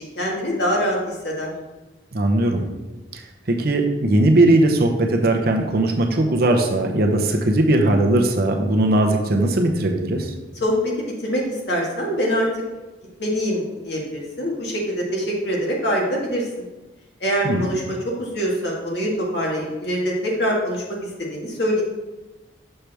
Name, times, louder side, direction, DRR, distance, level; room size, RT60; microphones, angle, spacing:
voice 1, 0.0-1.5 10.6-10.7 11.2-12.5 13.2-16.4 17.2-20.8 21.2-21.8, equal, 60° left, -2 dB, 1.7 m, -24 dB
voice 2, 2.1-2.6 3.1-3.2 3.5-10.3 17.4-17.7, right 1 dB, 55° right, 2 dB, 0.8 m, -19 dB
6.6 x 5.9 x 3.4 m, 1.1 s
head